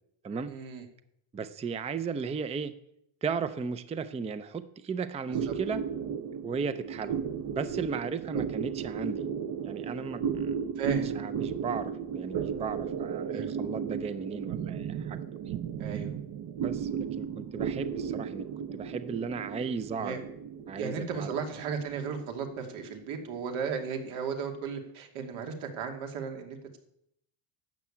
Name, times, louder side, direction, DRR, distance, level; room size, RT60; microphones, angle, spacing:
voice 1, 0.5-0.8 5.3-5.5 6.9-7.4 8.3-8.4 10.8-11.1 13.3-13.5 15.8-16.1 20.0-20.2 20.8-26.8, right 6 dB, 85° right, 4 dB, 2.6 m, -35 dB
voice 2, 1.3-2.7 3.2-5.8 6.4-7.2 7.5-9.2 9.6-10.6 11.2-15.2 15.5-15.6 16.6-20.2 20.7-21.3, right 5 dB, 15° right, 12 dB, 0.5 m, -35 dB
sound 1, 5.3-24.1, right 7 dB, 45° right, 0.8 m, -35 dB
12.0 x 7.0 x 8.6 m, 0.76 s
cardioid pair, 145°, 48 cm